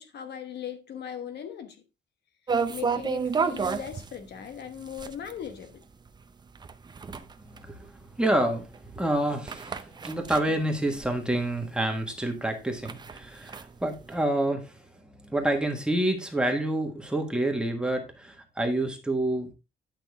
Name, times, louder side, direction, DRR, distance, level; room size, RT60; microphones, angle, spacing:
voice 1, 0.0-1.8 2.7-5.8, left 8 dB, 65° left, 1.3 m, -39 dB
sound 1, 2.5-11.6 12.0-12.1 12.5-14.2, right 5 dB, 25° right, 0.6 m, -32 dB
voice 2, 7.5-7.9 8.2-19.5, right 1 dB, 5° right, 1.5 m, -28 dB
10.0 x 6.0 x 3.5 m
cardioid pair, 155°, 19 cm